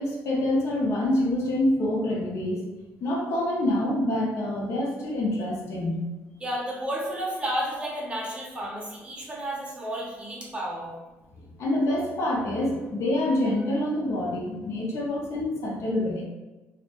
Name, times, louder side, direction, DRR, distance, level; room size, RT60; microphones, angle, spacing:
voice 1, 0.0-2.7 3.0-6.0 11.6-16.2, left 1 dB, 60° left, -3 dB, 0.6 m, -26 dB
voice 2, 6.4-10.9, equal, 20° right, -3 dB, 0.6 m, -32 dB
2.1 x 2.0 x 2.9 m, 1.1 s
cardioid pair, 115°, 6 cm